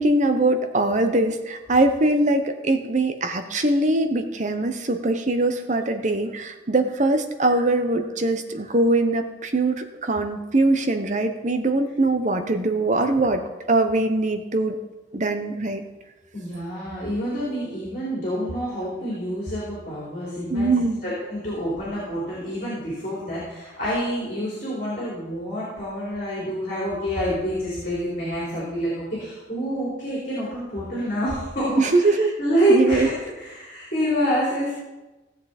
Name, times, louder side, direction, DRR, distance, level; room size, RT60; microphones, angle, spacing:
voice 1, 0.0-14.8 15.1-15.8 20.5-21.0 31.8-32.3 32.7-33.1, right 2 dB, 40° right, 7 dB, 0.8 m, -22 dB
voice 2, 16.3-34.7, equal, 40° left, -7 dB, 3.4 m, -27 dB
15.5 x 7.4 x 4.2 m, 1.1 s
head